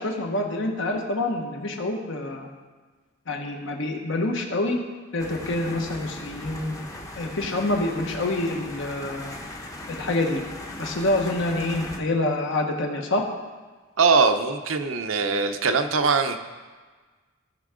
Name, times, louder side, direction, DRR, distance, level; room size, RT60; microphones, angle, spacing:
voice 1, 0.0-2.5 3.3-4.8 5.1-6.8 7.1-9.4 9.9-10.4 10.8-13.2, left 2 dB, 60° left, 2 dB, 1.3 m, -27 dB
sound 1, 5.2-12.0, left 1 dB, 15° left, 0.9 m, -38 dB
voice 2, 14.0-16.4, right 4 dB, 75° right, 7 dB, 0.7 m, -21 dB
16.5 x 5.8 x 3.8 m, 1.4 s
head